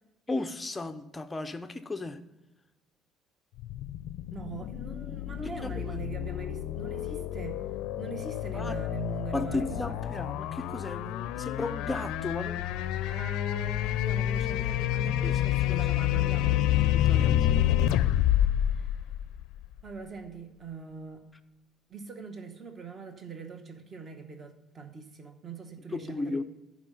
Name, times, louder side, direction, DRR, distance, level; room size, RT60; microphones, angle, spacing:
voice 1, 0.3-2.2 5.6-6.0 8.5-8.7 9.3-12.8 15.2-15.3 15.7-15.8 16.8-17.5 25.9-26.4, left 2 dB, 10° left, 0.5 m, -35 dB
sound 1, 3.6-19.8, left 12 dB, 80° left, 0.4 m, -29 dB
voice 2, 4.3-7.6 8.0-10.3 13.0-16.6 17.0-17.5 18.7-19.0 19.8-21.2 21.9-26.4, right 5 dB, 30° right, 0.9 m, -42 dB
11.0 x 5.0 x 5.4 m
cardioid pair, 155°, 0 cm